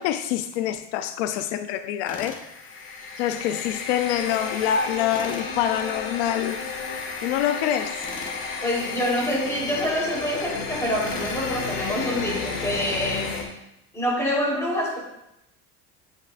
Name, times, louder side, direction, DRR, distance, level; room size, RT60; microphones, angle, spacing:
voice 1, 0.0-2.4 3.2-6.6 7.2-8.0, left 10 dB, 85° left, 0.7 m, -25 dB
Tools, 2.1-2.5 5.1-5.5 8.0-8.4 11.0-11.5, left 3 dB, 25° left, 1.3 m, -39 dB
sound 1, 2.3-13.4, left 4 dB, 70° left, 2.5 m, -32 dB
voice 2, 8.6-13.3 13.9-15.0, equal, 10° left, 3.9 m, -26 dB
13.5 x 7.3 x 2.6 m
cardioid pair, 130°, 33 cm